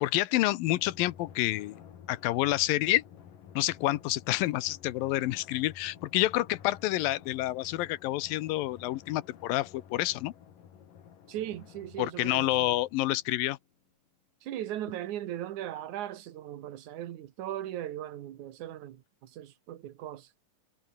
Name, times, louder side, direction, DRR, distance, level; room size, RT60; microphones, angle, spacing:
voice 1, 0.0-1.8 2.1-3.0 3.6-10.3 12.0-13.6, left 16 dB, 85° left, 2.6 m, -28 dB
Drum, 0.6-13.7, left 8 dB, 70° left, 4.1 m, -52 dB
voice 2, 11.3-12.8 14.4-20.3, right 12 dB, 65° right, 2.7 m, -38 dB
omnidirectional pair, 4.0 m